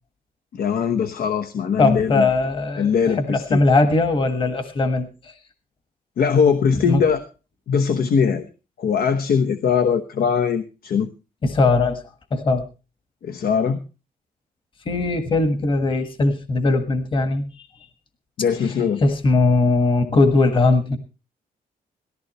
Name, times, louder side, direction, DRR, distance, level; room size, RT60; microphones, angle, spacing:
voice 1, 0.5-2.3 2.8-3.6 6.2-7.2 7.7-8.5 8.8-11.1 13.2-13.8 18.4-19.0, left 6 dB, 70° left, 8 dB, 1.1 m, -21 dB
voice 2, 1.8-5.3 6.8-7.0 11.4-12.0 12.3-12.7 14.8-17.7 18.6-18.7 19.0-21.0, left 3 dB, 35° left, 9 dB, 1.5 m, -20 dB
18.0 x 14.5 x 3.1 m, 0.32 s
wide cardioid pair, 175°, 16 cm